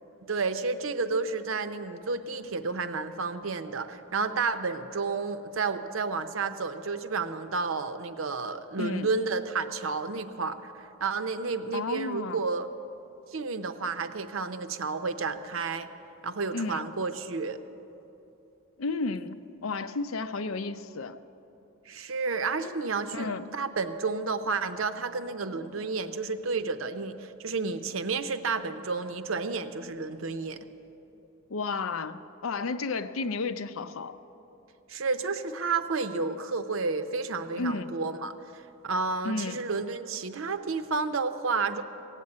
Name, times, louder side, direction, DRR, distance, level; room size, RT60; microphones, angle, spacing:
voice 1, 0.3-12.7 13.3-15.9 16.2-17.6 21.9-30.6 34.9-41.8, right 4 dB, 75° right, 10 dB, 0.7 m, -31 dB
voice 2, 8.8-9.1 11.7-12.4 16.5-16.8 18.8-21.2 23.1-23.4 31.5-34.2 37.6-37.9 39.2-39.6, left 3 dB, 90° left, 11 dB, 0.6 m, -32 dB
16.5 x 8.3 x 8.6 m, 3.0 s
head